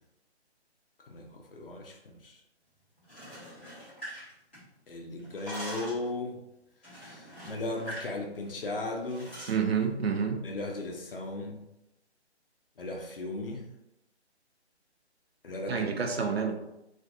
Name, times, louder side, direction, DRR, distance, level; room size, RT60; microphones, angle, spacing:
voice 1, 1.1-2.4 4.9-6.4 6.8-9.3 10.4-11.6 12.8-13.7 15.4-15.9, left 2 dB, 55° left, 1 dB, 0.6 m, -37 dB
sound 1, 3.0-4.9 5.2-6.1 6.8-8.2 8.4-8.6 9.1-9.6, equal, 10° left, 0.6 m, -43 dB
voice 2, 9.5-10.4 15.7-16.6, right 6 dB, 60° right, 3 dB, 0.5 m, -28 dB
2.5 x 2.3 x 2.6 m, 0.88 s
figure-of-eight pair, 150°, 34 cm